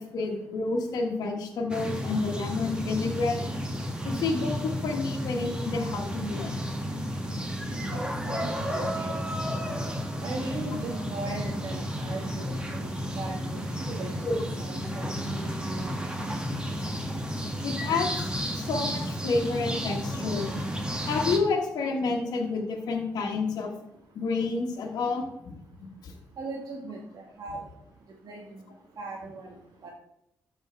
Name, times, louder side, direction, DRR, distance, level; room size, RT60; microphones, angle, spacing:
voice 1, 0.0-3.4 4.0-6.5 14.2-14.4 17.6-20.5 21.1-23.7 24.1-25.3 25.8-26.1, left 3 dB, 75° left, -1 dB, 1.4 m, -29 dB
sound 1, 1.7-21.4, equal, 15° right, 1.9 m, -32 dB
voice 2, 7.9-9.2 10.2-12.9 13.2-15.1 15.3-15.5 26.4-27.6 28.2-28.5 29.0-29.5 29.8-29.9, right 3 dB, 65° right, -2 dB, 1.4 m, -38 dB
13.0 x 4.7 x 3.3 m, 0.80 s
supercardioid pair, 45°, 7 cm